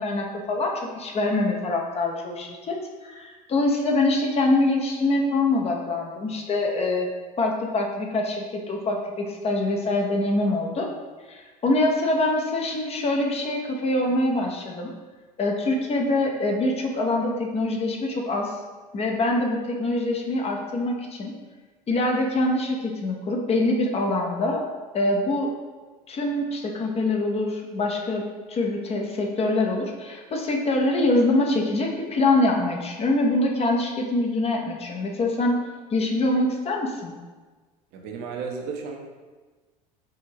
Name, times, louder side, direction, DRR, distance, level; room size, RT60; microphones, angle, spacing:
voice 1, 0.0-7.1 7.4-10.9 11.3-14.9 15.4-18.5 18.9-21.3 21.9-24.6 24.9-25.5 26.1-35.6 35.9-37.1, left 2 dB, 30° left, 1 dB, 0.7 m, -24 dB
voice 2, 37.9-39.0, right 5 dB, 55° right, 2 dB, 0.8 m, -33 dB
4.9 x 2.6 x 2.9 m, 1.3 s
hypercardioid pair, 75°, 20 cm